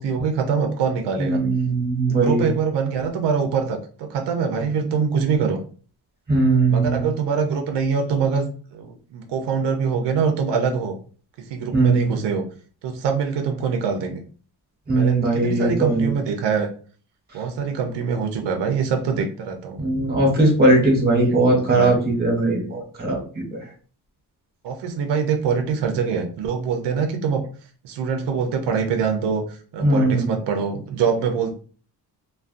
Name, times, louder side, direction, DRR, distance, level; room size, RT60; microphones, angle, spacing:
voice 1, 0.0-1.4 2.2-5.6 6.7-10.9 11.4-12.4 12.8-14.2 14.9-16.7 17.3-19.9 21.1-22.0 22.4-22.8 24.6-27.5 27.8-31.5, right 6 dB, 90° right, 4 dB, 0.6 m, -24 dB
voice 2, 1.2-2.5 6.3-7.0 11.7-12.1 14.9-16.1 19.8-23.4 29.8-30.3, right 2 dB, 25° right, -1 dB, 1.0 m, -19 dB
2.4 x 2.2 x 2.4 m, 0.41 s
cardioid pair, 150°, 40 cm